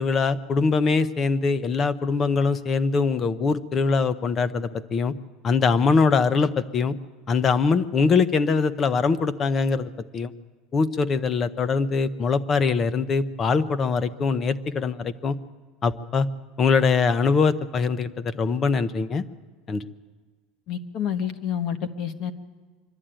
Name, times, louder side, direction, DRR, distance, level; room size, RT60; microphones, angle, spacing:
voice 1, 0.0-5.1 5.4-6.9 7.3-10.3 10.7-15.3 15.8-16.3 16.6-19.2 19.7-19.9, left 4 dB, 20° left, 15 dB, 0.6 m, -22 dB
voice 2, 20.7-22.3, left 9 dB, 40° left, 9 dB, 1.2 m, -28 dB
24.0 x 12.5 x 8.9 m, 1.5 s
cardioid pair, 170°, 0 cm